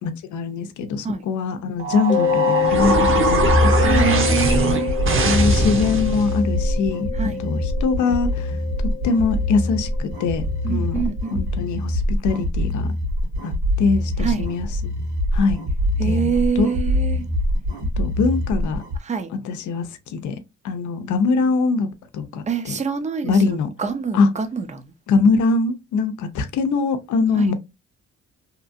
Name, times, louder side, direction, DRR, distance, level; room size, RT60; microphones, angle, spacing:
voice 1, 0.0-4.1 5.2-7.1 7.4-8.6 9.0-11.0 11.3-12.9 13.4-13.5 13.8-14.9 15.3-15.6 16.0-16.7 18.0-18.8 19.3-20.4 20.6-21.9 22.1-22.7 23.2-23.7 24.1-24.3 25.1-27.5, left 4 dB, 75° left, 0.6 m, -22 dB
sound 1, 1.8-6.4, right 2 dB, 45° right, 0.9 m, -20 dB
Mallet percussion, 2.1-10.7, left 7 dB, 25° left, 0.8 m, -26 dB
sound 2, 2.6-19.0, left 1 dB, 75° right, 1.5 m, -25 dB
voice 2, 3.8-5.0 7.2-7.4 10.6-11.5 14.2-14.5 16.0-17.2 19.0-19.3 22.5-24.8 27.3-27.5, right 6 dB, 25° right, 0.5 m, -26 dB
2.9 x 2.5 x 2.4 m
cardioid pair, 90°, 30 cm